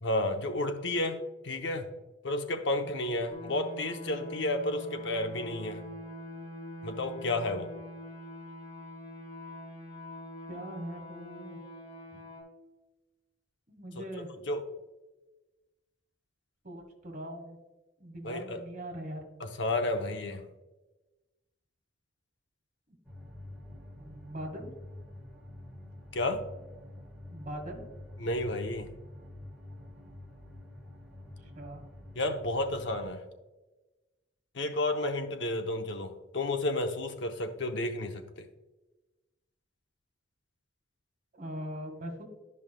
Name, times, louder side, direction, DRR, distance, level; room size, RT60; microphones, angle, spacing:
voice 1, 0.0-1.9 2.2-5.8 6.8-7.7 14.5-14.6 18.2-18.6 19.4-20.5 26.1-26.4 28.2-28.9 32.1-33.2 34.5-38.5, left 2 dB, 70° left, 6 dB, 0.8 m, -31 dB
sound 1, 3.3-12.4, equal, 45° left, 1.7 m, -44 dB
voice 2, 10.5-11.6 13.7-14.3 16.6-17.6 18.0-19.2 22.9-23.0 24.0-24.7 27.3-27.8 31.4-31.8 41.3-42.2, equal, 45° right, 3 dB, 1.7 m, -41 dB
sound 2, 23.0-33.0, left 1 dB, 5° right, 1.5 m, -47 dB
12.0 x 5.5 x 2.2 m, 1.1 s
head